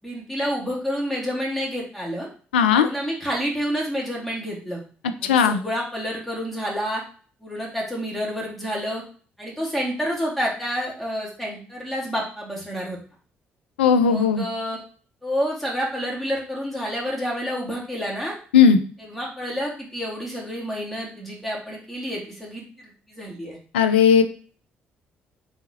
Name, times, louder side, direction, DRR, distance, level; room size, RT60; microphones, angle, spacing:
voice 1, 0.0-2.3 2.7-4.8 5.2-7.0 7.4-9.0 9.4-13.0 14.0-14.8 15.2-18.3 19.0-23.6, equal, 5° left, -3 dB, 2.1 m, -29 dB
voice 2, 2.5-2.9 5.2-5.6 13.8-14.4 18.5-18.8 23.7-24.2, left 7 dB, 80° left, 9 dB, 0.3 m, -16 dB
4.2 x 3.5 x 2.8 m, 0.41 s
figure-of-eight pair, 45°, 6 cm